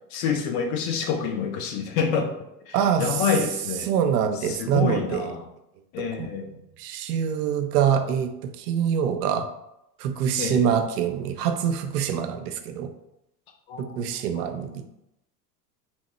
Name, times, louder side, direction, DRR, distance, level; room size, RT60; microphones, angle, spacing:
voice 1, 0.1-2.3 2.7-3.9 4.5-5.5 5.9-6.5 10.4-10.7 13.7-14.5, left 6 dB, 55° left, 5 dB, 0.6 m, -27 dB
voice 2, 2.7-3.3 3.8-5.3 6.2-9.5 10.0-12.9 13.8-14.8, right 8 dB, 70° right, 8 dB, 0.5 m, -25 dB
2.9 x 2.0 x 3.0 m, 0.84 s
hypercardioid pair, 80°, 50 cm